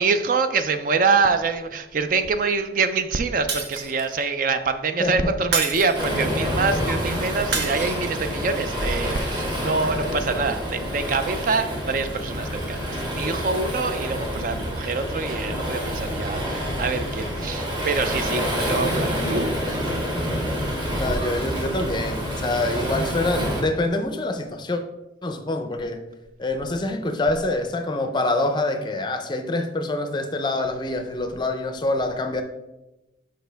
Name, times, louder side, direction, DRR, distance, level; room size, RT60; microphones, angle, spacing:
voice 1, 0.0-19.8, right 4 dB, 45° right, 9 dB, 0.4 m, -25 dB
Shatter, 3.5-4.2 5.5-6.3 7.5-8.3, right 5 dB, 65° right, 0.9 m, -28 dB
voice 2, 5.0-5.3 20.9-24.8 25.2-26.0 26.4-32.4, left 2 dB, 25° left, 7 dB, 0.5 m, -26 dB
Waves surf, 5.9-23.6, equal, 25° right, 1.3 m, -27 dB
6.5 x 5.1 x 3.4 m, 1.0 s
head